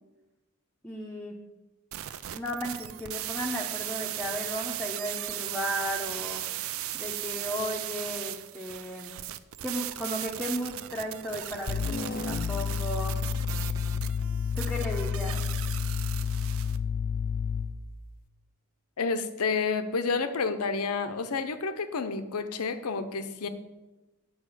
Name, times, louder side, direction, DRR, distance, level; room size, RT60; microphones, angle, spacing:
voice 1, 0.8-1.4 2.3-6.4 6.9-9.1 9.6-13.2 14.6-15.4, equal, 5° left, -2 dB, 0.8 m, -35 dB
sound 1, 1.9-16.8, right 12 dB, 65° right, 0.4 m, -37 dB
sound 2, 11.7-17.8, left 6 dB, 40° left, 0.4 m, -30 dB
voice 2, 19.0-23.5, left 4 dB, 85° left, 9 dB, 0.7 m, -30 dB
8.8 x 4.8 x 6.4 m, 1.1 s
head